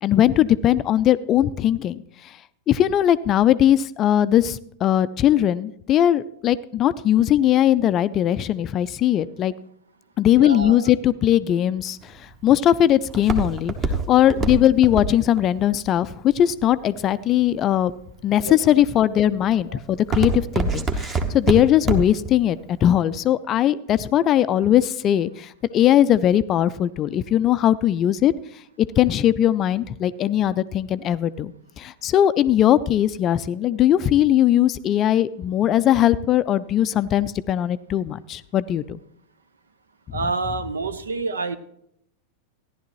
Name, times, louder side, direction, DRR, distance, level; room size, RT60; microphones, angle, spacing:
voice 1, 0.0-2.4 2.7-9.5 10.2-17.9 18.2-28.3 29.0-39.0, left 11 dB, 30° left, 16 dB, 0.4 m, -20 dB
voice 2, 10.3-10.9 14.3-14.4 18.4-18.6 19.7-19.8 40.1-41.6, right 4 dB, 70° right, 12 dB, 0.5 m, -28 dB
Walk footsteps, 12.0-17.1 17.7-18.2 18.7-19.1 19.4-22.3 22.6-22.7, right 3 dB, 25° right, 1.1 m, -25 dB
14.5 x 11.0 x 3.1 m, 0.72 s
figure-of-eight pair, 90°, 0 cm